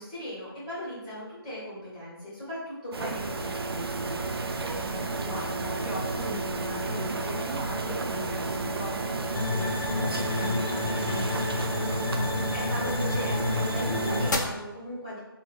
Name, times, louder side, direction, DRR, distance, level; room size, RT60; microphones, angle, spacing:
voice 1, 0.0-4.2 12.5-15.2, equal, 20° left, -9 dB, 1.2 m, -38 dB
sound 1, 2.9-14.3, right 3 dB, 70° right, 0.4 m, -32 dB
voice 2, 4.6-11.9, equal, ahead, -13 dB, 0.6 m, -38 dB
sound 2, 9.4-14.4, left 3 dB, 50° left, 0.4 m, -30 dB
2.9 x 2.3 x 3.1 m, 1.1 s
figure-of-eight pair, 160°, 13 cm